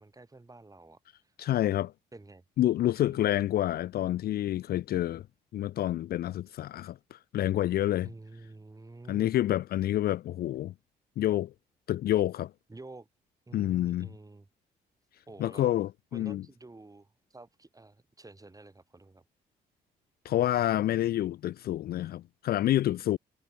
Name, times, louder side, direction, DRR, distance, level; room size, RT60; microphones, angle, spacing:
voice 1, 0.0-1.3 2.1-2.4 3.1-3.4 8.0-9.3 12.7-13.1 13.5-14.5 15.3-15.7 16.1-19.2, right 2 dB, 20° right, 7.5 m, -50 dB
voice 2, 1.4-1.9 2.6-5.2 5.5-8.1 9.1-10.7 11.2-11.5 11.9-12.5 13.5-14.1 15.4-16.4 20.2-23.2, left 13 dB, 60° left, 0.4 m, -28 dB
supercardioid pair, 70°, 18 cm